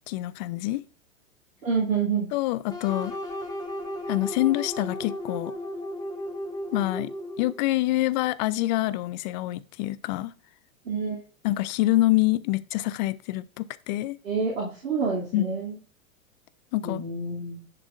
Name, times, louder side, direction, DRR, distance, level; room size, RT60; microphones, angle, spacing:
voice 1, 0.1-0.8 2.3-3.1 4.1-5.5 6.7-10.3 11.4-14.2 15.3-15.5 16.7-17.0, left 17 dB, 35° left, 0.5 m, -26 dB
voice 2, 1.6-2.3 10.9-11.2 14.2-15.8 16.8-17.6, right 5 dB, 75° right, 2.6 m, -28 dB
sound 1, 2.7-7.6, equal, 10° left, 2.4 m, -35 dB
10.5 x 6.2 x 2.4 m
figure-of-eight pair, 100°, 41 cm